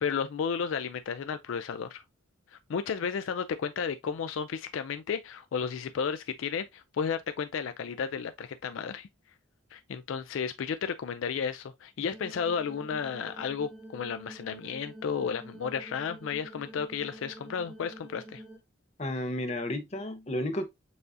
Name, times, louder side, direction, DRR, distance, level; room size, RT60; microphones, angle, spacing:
voice 1, 0.0-2.0 2.5-9.1 9.7-18.4, left 6 dB, 65° left, 0.3 m, -33 dB
sound 1, 12.1-18.6, right 1 dB, 5° right, 1.0 m, -47 dB
voice 2, 19.0-20.7, left 1 dB, 30° left, 0.7 m, -32 dB
6.8 x 2.6 x 2.4 m
head